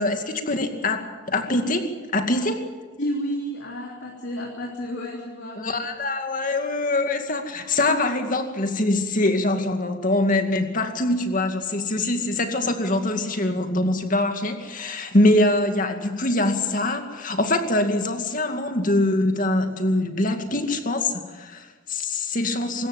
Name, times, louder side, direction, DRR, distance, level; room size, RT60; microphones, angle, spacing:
voice 1, 0.0-2.6 5.6-22.9, left 2 dB, 45° left, 6 dB, 2.3 m, -23 dB
voice 2, 3.0-5.6, equal, 60° left, -2 dB, 3.4 m, -31 dB
25.0 x 14.0 x 9.1 m, 1.4 s
head